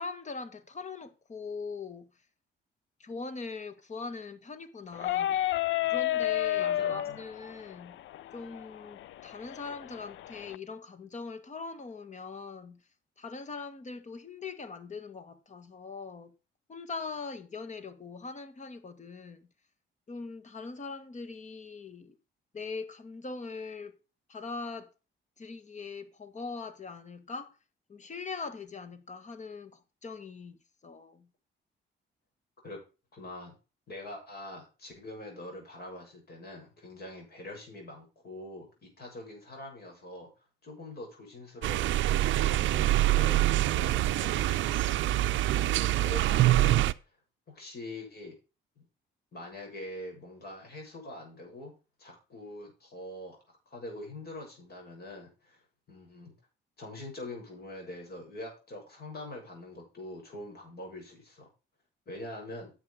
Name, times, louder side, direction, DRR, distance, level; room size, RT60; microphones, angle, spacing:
voice 1, 0.0-2.1 3.0-5.4 5.9-8.0 8.3-12.8 13.2-16.3 16.7-19.5 20.1-22.1 22.5-24.0 24.3-24.9 25.4-27.5 27.9-30.6 30.8-31.3, left 4 dB, 35° left, 1.7 m, -41 dB
sound 1, 4.9-10.6, left 13 dB, 75° left, 0.4 m, -32 dB
voice 2, 6.6-7.2 32.6-32.8 33.1-33.6 33.9-40.3 40.6-44.7 45.5-46.8 47.5-48.3 48.8-48.9 49.3-51.7 52.0-53.4 53.7-55.6 55.9-56.3 56.8-61.5 62.1-62.7, left 1 dB, 50° left, 7.0 m, -44 dB
sound 2, 41.6-46.9, right 15 dB, 75° right, 0.5 m, -25 dB
9.5 x 7.5 x 5.0 m
cardioid pair, 90°, 20 cm